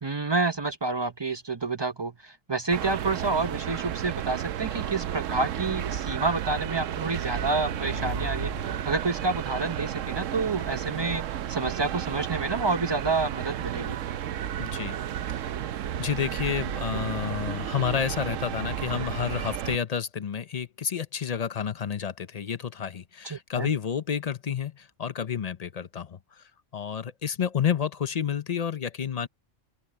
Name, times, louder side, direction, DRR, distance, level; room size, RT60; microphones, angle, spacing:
voice 1, 0.0-14.0 23.2-23.7, right 3 dB, 25° right, 0.6 m, -29 dB
sound 1, 2.7-19.8, right 10 dB, 85° right, 1.0 m, -32 dB
Motorcycle / Engine, 6.8-10.3, right 2 dB, 60° right, 5.0 m, -41 dB
voice 2, 14.6-15.0 15.3-15.6 16.0-26.4 26.7-29.3, left 8 dB, 45° left, 0.6 m, -30 dB
open air
omnidirectional pair, 1.3 m